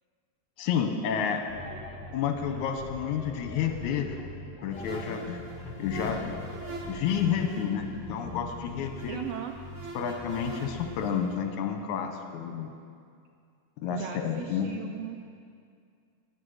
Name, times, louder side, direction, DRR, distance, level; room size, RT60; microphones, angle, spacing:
voice 1, 0.6-1.4 2.1-4.2 4.6-5.4 5.8-6.4 6.9-9.2 9.9-12.7 13.8-14.7, left 7 dB, 75° left, 5 dB, 2.3 m, -30 dB
sound 1, 1.4-7.4, left 5 dB, 55° left, 1.9 m, -45 dB
Bass guitar, 1.5-2.7 3.0-5.1 5.4-7.5 7.8-9.9 10.2-11.1, equal, 10° right, 1.2 m, -44 dB
sound 2, 4.7-11.4, right 1 dB, 70° right, 3.1 m, -43 dB
voice 2, 9.1-9.5 13.9-15.2, right 10 dB, 90° right, 5 dB, 1.4 m, -37 dB
20.0 x 7.1 x 6.5 m, 2.3 s
omnidirectional pair, 3.5 m